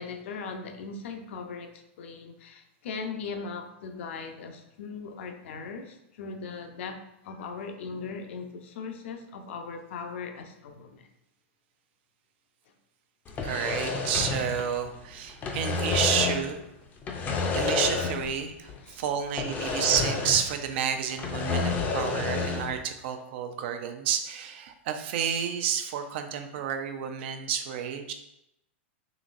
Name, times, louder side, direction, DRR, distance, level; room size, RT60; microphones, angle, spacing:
voice 1, 0.0-11.1 18.8-19.0 19.3-19.4, left 5 dB, 70° left, 6 dB, 0.5 m, -39 dB
sound 1, 13.3-15.0 15.3-16.5 17.0-18.4 18.7-18.8 19.4-20.6 20.9-22.8, left 4 dB, 25° left, 0.5 m, -29 dB
voice 2, 13.4-16.6 17.3-28.1, right 8 dB, 60° right, 7 dB, 0.5 m, -30 dB
3.9 x 3.0 x 2.5 m, 0.84 s
hypercardioid pair, 125°, 7 cm